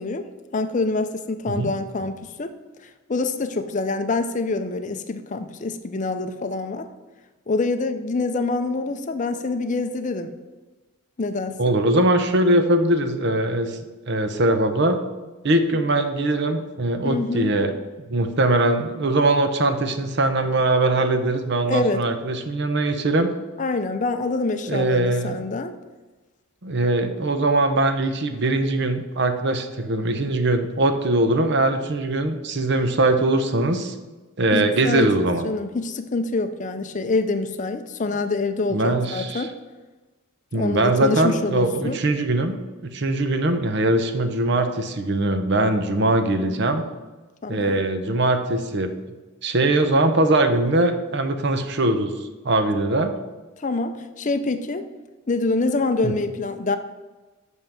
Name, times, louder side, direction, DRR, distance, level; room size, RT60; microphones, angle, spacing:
voice 1, 0.0-2.5 3.1-6.9 7.5-10.3 11.2-11.8 17.0-17.5 21.7-22.0 23.6-25.7 34.5-39.5 40.5-42.0 47.4-47.8 53.6-54.8 55.3-56.8, left 3 dB, 35° left, 9 dB, 0.5 m, -26 dB
voice 2, 11.6-13.8 14.1-15.0 15.4-17.7 18.1-23.3 24.6-25.4 26.6-34.0 34.4-35.5 38.7-39.5 40.5-42.5 42.8-46.8 47.5-48.9 49.4-52.1 52.4-53.1 56.0-56.1, right 2 dB, 50° right, 8 dB, 0.8 m, -21 dB
6.3 x 5.6 x 7.1 m, 1.2 s
head